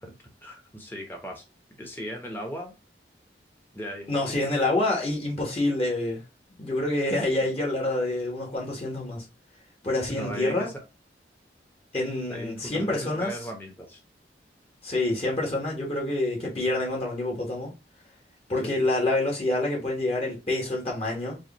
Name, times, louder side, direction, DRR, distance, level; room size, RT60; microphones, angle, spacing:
voice 1, 0.0-1.4 1.7-2.7 3.7-4.5 10.1-10.7 12.3-14.0 18.6-18.8, equal, 10° left, 1.0 m, -37 dB
voice 2, 4.1-6.2 6.6-9.2 9.8-10.7 11.9-13.4 14.8-17.7 18.5-21.4, left 2 dB, 35° left, 1.4 m, -27 dB
4.7 x 2.5 x 3.0 m
head